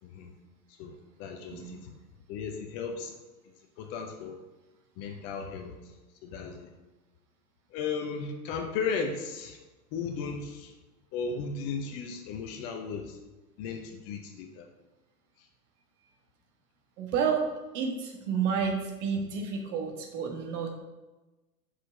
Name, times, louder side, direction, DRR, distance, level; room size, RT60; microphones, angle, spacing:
voice 1, 0.0-0.3 0.8-1.9 2.3-3.1 3.8-4.4 5.0-5.9 6.2-6.7 7.7-9.6 9.9-10.8 11.1-13.2 13.6-14.7 15.4-15.5, left 5 dB, 30° left, 4 dB, 0.7 m, -35 dB
voice 2, 17.0-17.5 17.7-20.7, right 6 dB, 50° right, 2 dB, 1.4 m, -30 dB
5.9 x 4.9 x 4.6 m, 1.1 s
hypercardioid pair, 105°, 47 cm